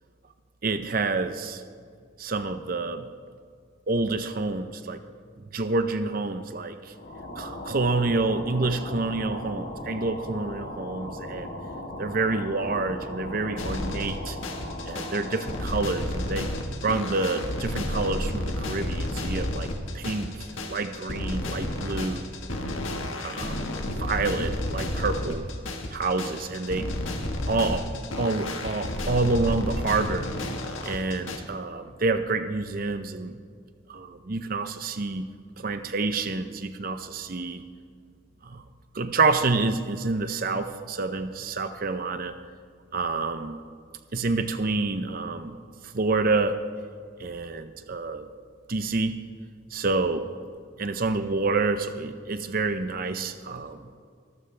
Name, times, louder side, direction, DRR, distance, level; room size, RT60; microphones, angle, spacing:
voice 1, 0.6-1.6 2.2-3.1 3.9-5.0 5.5-6.9 7.4-11.5 12.0-14.4 14.9-16.5 16.8-19.7 19.9-22.3 23.2-23.6 23.9-25.4 25.9-26.9 27.5-27.9 28.2-30.3 30.8-33.4 33.9-37.6 38.4-38.6 38.9-42.4 42.9-43.6 44.1-45.5 45.8-46.6 47.2-48.3 48.7-49.2 49.7-50.3 50.8-53.8, right 3 dB, 45° right, 9 dB, 0.6 m, -28 dB
sound 1, 6.9-15.8, left 1 dB, 60° left, 2.7 m, -38 dB
sound 2, 13.6-31.4, left 1 dB, 80° left, 1.5 m, -31 dB
24.0 x 14.0 x 3.3 m, 2.1 s
head